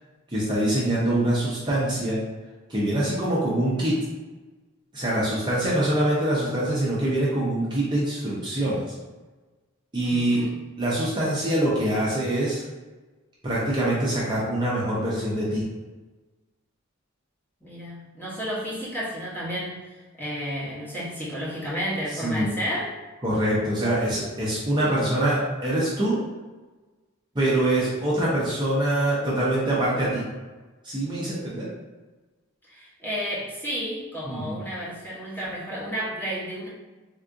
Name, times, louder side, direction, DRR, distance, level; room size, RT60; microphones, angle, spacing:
voice 1, 0.3-2.2 2.7-4.0 4.9-8.8 9.9-10.5 10.8-12.6 13.4-15.6 22.2-22.5 23.2-26.2 27.3-30.2 30.8-31.7 34.3-34.6, right 1 dB, 20° right, -7 dB, 0.6 m, -24 dB
voice 2, 5.1-5.4 10.0-10.6 17.6-23.0 24.8-25.2 32.7-36.7, equal, 10° left, -9 dB, 0.8 m, -32 dB
3.5 x 2.5 x 2.5 m, 1.2 s
head